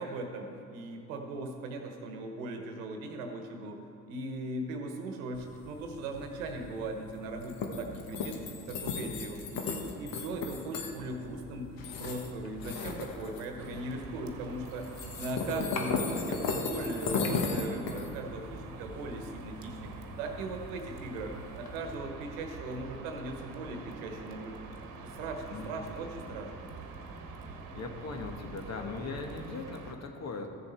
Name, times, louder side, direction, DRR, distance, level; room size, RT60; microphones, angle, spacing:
voice 1, 0.0-3.8 4.1-8.4 8.7-14.9 15.2-24.5 25.2-26.7, right 2 dB, 85° right, 4 dB, 1.2 m, -39 dB
sound 1, 5.3-21.8, left 4 dB, 60° left, 1.3 m, -37 dB
sound 2, 13.6-29.9, right 4 dB, 55° right, 1.2 m, -46 dB
voice 2, 25.5-25.9 26.3-26.4 27.7-30.5, left 4 dB, 40° left, 4 dB, 1.4 m, -39 dB
14.0 x 6.9 x 4.4 m, 2.6 s
hypercardioid pair, 60°, 38 cm